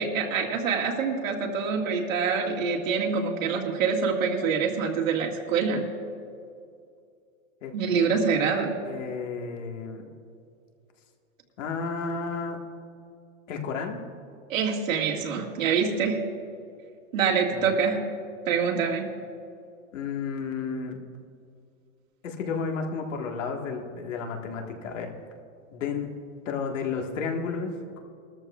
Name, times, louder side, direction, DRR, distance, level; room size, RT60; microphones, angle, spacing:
voice 1, 0.0-5.9 7.7-8.7 14.5-16.2 17.1-18.0 18.5-19.1, right 5 dB, 75° right, 0 dB, 2.1 m, -25 dB
voice 2, 8.8-10.1 11.6-12.6 13.5-14.0 17.5-17.7 19.9-21.0 22.2-25.1 25.7-26.1 26.5-28.0, left 5 dB, 65° left, 2 dB, 1.8 m, -32 dB
20.5 x 13.5 x 2.5 m, 2.4 s
supercardioid pair, 165°, 40 cm